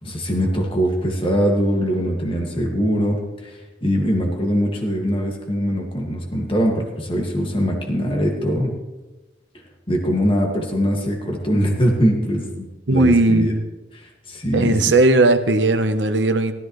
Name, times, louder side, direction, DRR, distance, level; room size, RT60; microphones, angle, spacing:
voice 1, 0.0-8.7 9.9-13.5 14.0-14.9, equal, 30° left, 0 dB, 2.0 m, -22 dB
voice 2, 12.9-13.6 14.5-16.5, right 2 dB, 80° right, 8 dB, 1.0 m, -17 dB
15.5 x 13.5 x 3.2 m, 1.1 s
head